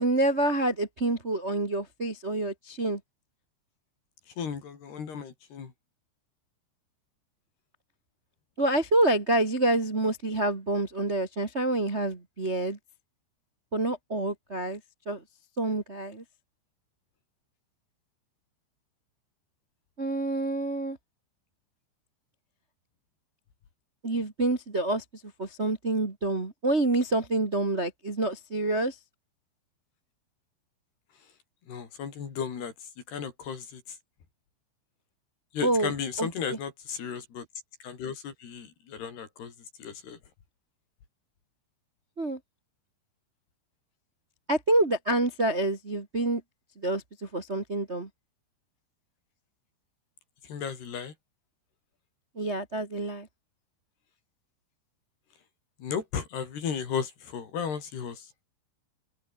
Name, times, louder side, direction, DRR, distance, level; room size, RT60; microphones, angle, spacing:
voice 1, 0.0-3.0 8.6-12.8 13.7-14.8 15.0-15.2 15.6-16.2 20.0-21.0 24.0-25.0 25.4-28.9 35.6-36.6 42.2-42.4 44.5-46.4 46.8-47.0 47.3-48.1 52.4-53.3, right 2 dB, 90° right, 0.6 m, -27 dB
voice 2, 4.4-5.7 31.7-32.7 33.1-33.6 35.5-37.4 37.8-39.5 39.8-40.2 50.5-51.1 55.8-58.2, left 7 dB, 55° left, 5.8 m, -34 dB
open air
omnidirectional pair, 5.7 m